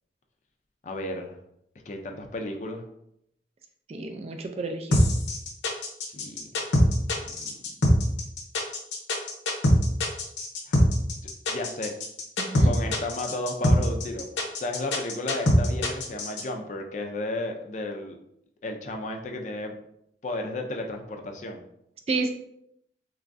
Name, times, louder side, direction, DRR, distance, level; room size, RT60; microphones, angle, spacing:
voice 1, 0.8-1.4 1.9-2.8 6.0-6.4 7.2-7.7 10.7-10.8 11.5-11.9 12.6-14.3 14.6-18.2 18.6-19.7 20.2-21.6, left 2 dB, 40° left, 3 dB, 0.4 m, -33 dB
voice 2, 3.9-5.0 12.4-12.7 22.1-22.3, right 3 dB, 35° right, 5 dB, 0.3 m, -30 dB
sound 1, 4.9-16.4, left 1 dB, 80° left, 0.7 m, -23 dB
3.4 x 3.0 x 2.5 m, 0.76 s
head